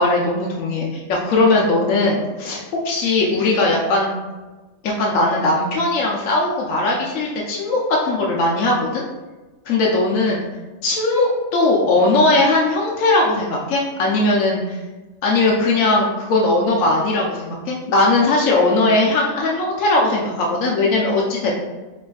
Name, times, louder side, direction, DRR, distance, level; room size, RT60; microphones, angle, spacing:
voice 1, 0.0-4.1 4.8-9.0 9.7-10.4 10.8-14.8 15.2-21.5, left 2 dB, 75° left, -3 dB, 1.0 m, -19 dB
5.2 x 3.3 x 2.3 m, 1.2 s
omnidirectional pair, 1.4 m